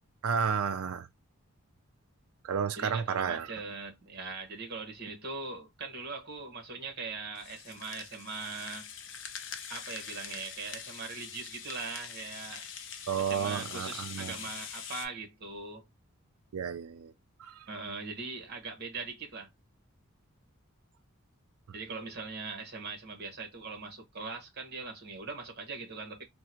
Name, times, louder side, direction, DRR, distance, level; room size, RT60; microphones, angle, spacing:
voice 1, 0.2-1.1 2.4-3.5 13.1-14.4 16.5-17.1 17.4-17.7, right 7 dB, 75° right, 0.4 m, -32 dB
voice 2, 2.8-8.9 9.7-12.7 13.3-15.9 17.7-19.5 21.7-26.2, right 4 dB, 45° right, 1.1 m, -41 dB
Rattle (instrument), 7.3-15.1, left 7 dB, 55° left, 0.6 m, -44 dB
3.7 x 2.1 x 2.8 m
head